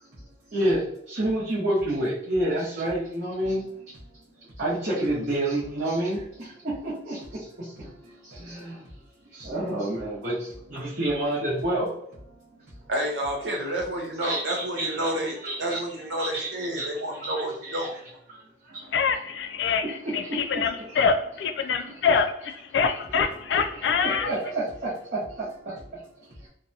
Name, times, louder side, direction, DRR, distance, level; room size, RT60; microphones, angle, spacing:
voice 1, 0.5-8.9 9.3-11.9 12.3-12.7 14.2-16.5 16.7-17.9 18.3-18.9 19.6-21.0 21.8-21.9 23.4-23.5 23.7-26.0, right 1 dB, 50° right, -10 dB, 0.8 m, -30 dB
voice 2, 12.9-17.9, right 1 dB, 80° right, 0 dB, 0.5 m, -30 dB
voice 3, 18.9-24.3, left 5 dB, 75° left, 7 dB, 0.3 m, -25 dB
2.6 x 2.2 x 2.6 m, 0.76 s
head